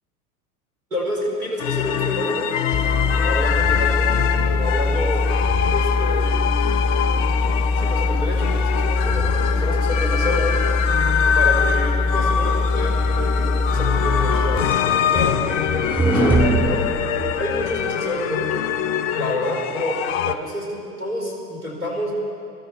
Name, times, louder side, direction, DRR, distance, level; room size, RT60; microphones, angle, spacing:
voice 1, 0.9-2.5 3.2-4.2 4.5-5.2 5.7-6.4 7.8-10.6 11.3-14.6 15.0-18.6 19.2-20.0 20.2-22.1, left 1 dB, 80° right, -3 dB, 4.3 m, -28 dB
sound 1, 1.6-20.3, left 9 dB, 55° left, 0.8 m, -24 dB
sound 2, 2.7-14.6, left 3 dB, 15° left, 0.4 m, -22 dB
sound 3, 14.1-17.8, right 2 dB, 5° right, 4.0 m, -22 dB
23.0 x 13.5 x 4.3 m, 2.5 s
figure-of-eight pair, 85°, 45 cm